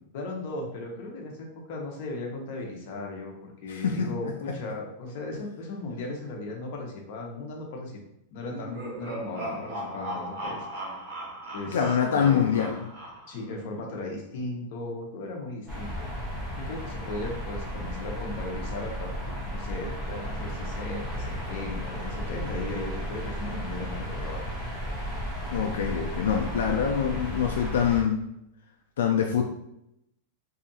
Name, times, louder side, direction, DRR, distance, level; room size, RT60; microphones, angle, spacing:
voice 1, 0.1-8.0 8.3-10.7 11.5-12.6 13.3-15.9 16.5-24.5, left 2 dB, 50° left, 0 dB, 0.7 m, -37 dB
voice 2, 3.7-4.1 11.7-12.8 25.5-28.2 29.0-29.4, left 7 dB, 90° left, 2 dB, 0.3 m, -25 dB
sound 1, 8.4-13.5, right 1 dB, 70° right, 0.9 m, -37 dB
sound 2, 15.7-28.0, equal, 5° left, 0.9 m, -34 dB
2.7 x 2.4 x 2.6 m, 0.81 s
supercardioid pair, 160°, 0 cm